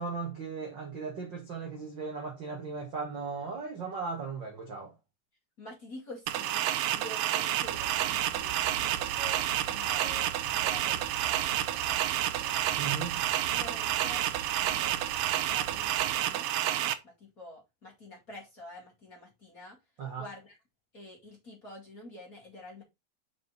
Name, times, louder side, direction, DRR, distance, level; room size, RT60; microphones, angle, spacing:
voice 1, 0.0-4.9 12.8-13.2 20.0-20.3, right 5 dB, 60° right, 1.2 m, -37 dB
voice 2, 5.6-6.7 7.0-9.4 9.7-12.6 13.5-14.2 14.6-19.8 20.2-20.5 20.9-22.8, left 1 dB, 30° left, 2.1 m, -48 dB
sound 1, 6.3-16.9, right 12 dB, 85° right, 2.6 m, -30 dB
sound 2, 7.6-16.2, right 5 dB, 40° right, 2.3 m, -46 dB
5.6 x 5.4 x 4.0 m
omnidirectional pair, 4.3 m